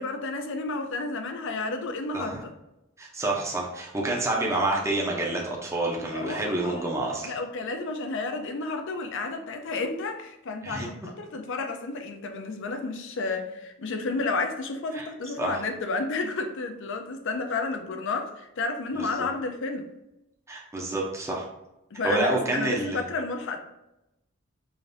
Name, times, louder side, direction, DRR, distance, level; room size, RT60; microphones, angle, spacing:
voice 1, 0.0-2.5 6.1-6.9 7.2-19.9 21.9-23.6, left 3 dB, 60° left, 5 dB, 0.5 m, -31 dB
voice 2, 3.0-7.3 10.6-10.9 14.9-15.1 15.4-15.6 18.9-19.3 20.5-21.5 22.0-23.0, right 2 dB, 15° right, -2 dB, 0.6 m, -28 dB
5.0 x 2.5 x 2.6 m, 0.90 s
head